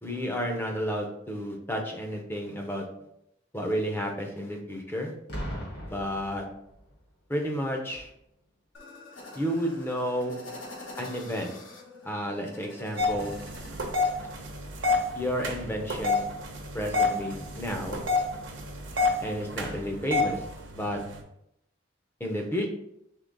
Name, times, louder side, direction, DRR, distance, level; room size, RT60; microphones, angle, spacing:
voice 1, 0.0-2.8 3.5-5.1 5.9-6.4 7.3-8.1 9.4-10.4 11.0-11.6 12.0-13.4 15.2-16.2 16.7-18.0 19.2-20.4 20.7-21.0 22.2-22.7, equal, 10° left, 2 dB, 0.6 m, -31 dB
Boom, 5.3-7.1 7.9-8.2, equal, 50° left, 1.4 m, -38 dB
sound 1, 8.7-14.3, left 2 dB, 70° left, 1.0 m, -46 dB
sound 2, 13.0-21.2, left 3 dB, 65° right, 0.8 m, -29 dB
3.6 x 3.4 x 3.9 m, 0.78 s
head